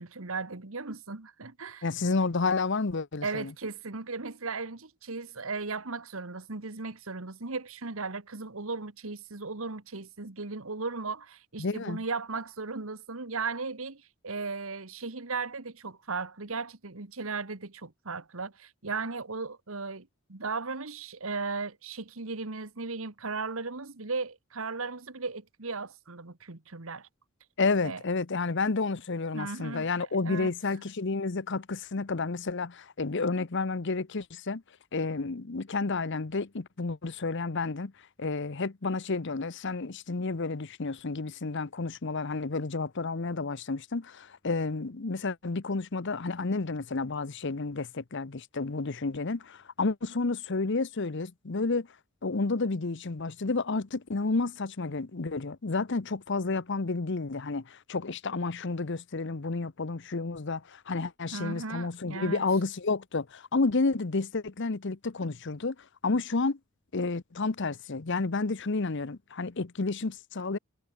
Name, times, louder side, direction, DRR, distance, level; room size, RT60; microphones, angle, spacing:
voice 1, 0.0-1.9 3.2-27.1 27.8-28.0 29.3-30.5 61.3-62.4, right 4 dB, 70° right, 1.6 m, -36 dB
voice 2, 1.8-3.5 11.6-12.0 27.6-34.6 34.9-37.9 38.2-51.9 52.2-65.8 66.0-66.6 66.9-70.6, left 3 dB, 55° left, 0.9 m, -30 dB
head